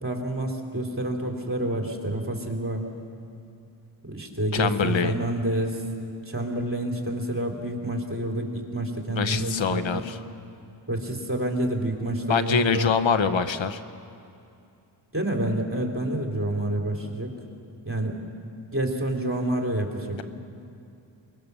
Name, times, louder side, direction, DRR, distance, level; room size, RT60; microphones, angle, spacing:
voice 1, 0.0-2.9 4.0-5.8 6.3-10.0 10.9-12.9 15.1-17.4 17.8-18.3 18.7-20.2, right 1 dB, 25° right, 1 dB, 3.5 m, -28 dB
voice 2, 4.5-5.2 9.2-10.2 12.3-13.8, left 6 dB, 70° left, 11 dB, 1.0 m, -24 dB
22.5 x 22.0 x 6.9 m, 2.5 s
wide cardioid pair, 70°, 47 cm